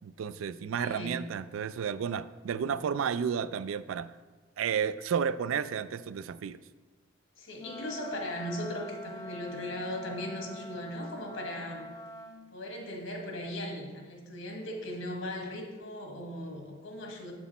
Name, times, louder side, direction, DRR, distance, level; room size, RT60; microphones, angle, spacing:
voice 1, 0.0-4.1 4.6-6.6, right 7 dB, 80° right, 15 dB, 0.3 m, -32 dB
voice 2, 0.8-1.2 7.3-11.9 12.5-17.3, left 1 dB, 75° left, 2 dB, 1.4 m, -38 dB
Wind instrument woodwind instrument, 7.5-12.4, equal, 15° left, 0.4 m, -45 dB
8.0 x 6.1 x 4.2 m, 1.3 s
head